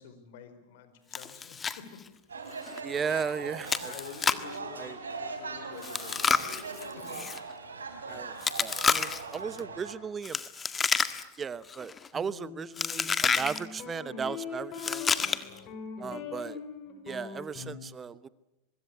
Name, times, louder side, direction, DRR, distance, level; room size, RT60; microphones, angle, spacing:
voice 1, 0.0-2.2 3.3-3.5 3.9-6.5 6.9-7.3 8.0-8.3 9.3-10.0 15.4-15.7, left 7 dB, 65° left, 10 dB, 4.5 m, -49 dB
Chewing mastication, 1.1-1.8 2.1-2.2 2.7-2.8 3.7-4.5 5.8-7.4 8.4-9.3 10.2-11.4 11.7-12.1 12.8-13.6 14.7-15.6, left 5 dB, 20° left, 1.6 m, -29 dB
sound 1, 2.3-9.9, right 4 dB, 90° right, 3.8 m, -40 dB
voice 2, 2.8-3.9 4.7-5.0 8.1-8.3 8.6-10.4 11.4-15.0 16.0-16.6 17.0-18.3, right 6 dB, 25° right, 17 dB, 0.9 m, -36 dB
sound 2, 12.1-17.7, left 6 dB, 45° left, 6.0 m, -41 dB
24.5 x 22.0 x 8.4 m, 0.91 s
hypercardioid pair, 95°, 0 cm